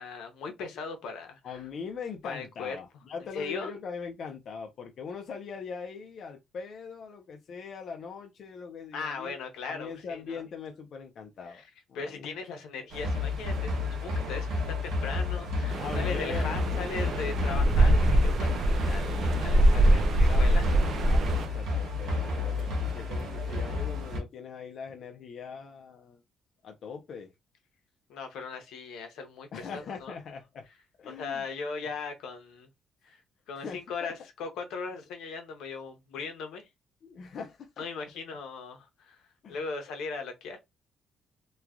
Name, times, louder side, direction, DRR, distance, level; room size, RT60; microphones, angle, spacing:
voice 1, 0.0-1.6 2.2-2.8 3.3-3.7 8.9-10.4 11.5-11.6 11.9-13.7 14.0-20.7 28.1-30.1 31.1-32.7 33.0-33.2 33.5-36.7 37.8-39.2 39.5-40.6, left 4 dB, 80° left, 0.7 m, -38 dB
voice 2, 1.4-9.4 9.7-11.6 11.9-12.4 15.8-16.5 19.7-26.2 26.6-27.3 29.5-30.7 31.0-31.5 33.5-34.1 37.0-37.8 39.4-39.6, left 6 dB, 45° left, 0.4 m, -41 dB
sound 1, 12.9-24.2, left 3 dB, 75° right, 1.0 m, -31 dB
sound 2, 15.7-21.5, right 1 dB, 45° right, 0.4 m, -24 dB
3.0 x 2.2 x 2.4 m
cardioid pair, 175°, 0 cm